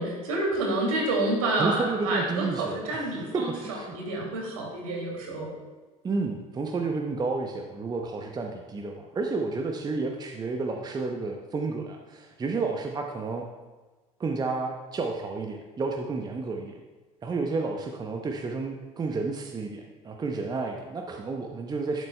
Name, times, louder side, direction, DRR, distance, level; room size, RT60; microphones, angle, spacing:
voice 1, 0.0-3.5 3.9-5.5, right 2 dB, 70° right, -1 dB, 2.4 m, -28 dB
voice 2, 1.6-3.9 6.0-13.4 14.2-16.8 17.2-22.1, right 3 dB, 20° right, 3 dB, 0.7 m, -31 dB
11.5 x 7.8 x 2.2 m, 1.3 s
figure-of-eight pair, 70°, 19 cm